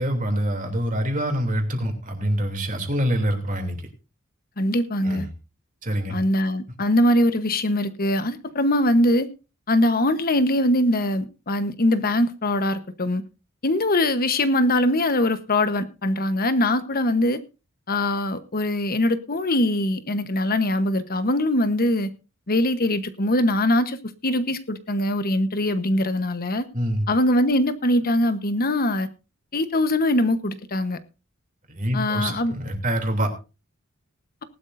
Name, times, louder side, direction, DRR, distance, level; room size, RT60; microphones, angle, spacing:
voice 1, 0.0-3.8 5.0-5.3 5.8-6.1 26.7-27.0 31.7-33.3, equal, 40° right, 3.0 m, -25 dB
voice 2, 4.6-5.3 6.1-9.3 9.7-13.2 13.6-17.4 17.9-22.1 22.5-24.0 24.2-26.7 27.1-29.1 29.5-31.0 31.9-32.5, left 1 dB, 45° left, 1.1 m, -22 dB
19.0 x 12.0 x 2.7 m
head